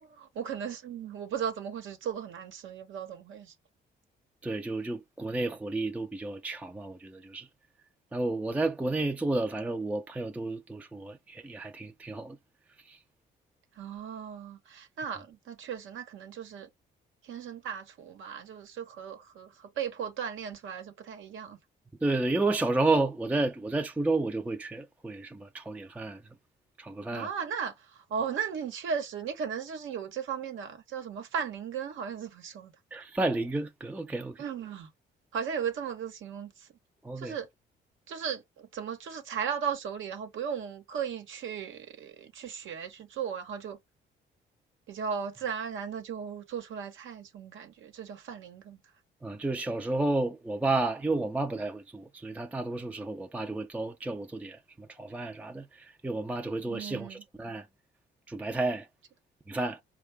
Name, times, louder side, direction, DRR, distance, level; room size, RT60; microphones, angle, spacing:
voice 1, 0.0-3.5 13.8-16.7 17.2-21.6 27.1-32.7 34.4-34.9 35.3-36.7 37.2-37.5 38.1-43.8 44.9-48.8 56.6-57.2, right 7 dB, 75° right, 1.1 m, -36 dB
voice 2, 4.4-7.5 8.1-12.4 12.9-13.0 22.0-26.2 26.8-27.3 32.9-34.4 37.0-37.4 49.2-57.7 58.3-58.9 59.5-59.8, right 2 dB, 5° right, 0.4 m, -31 dB
4.5 x 2.3 x 3.3 m
cardioid pair, 90°, 20 cm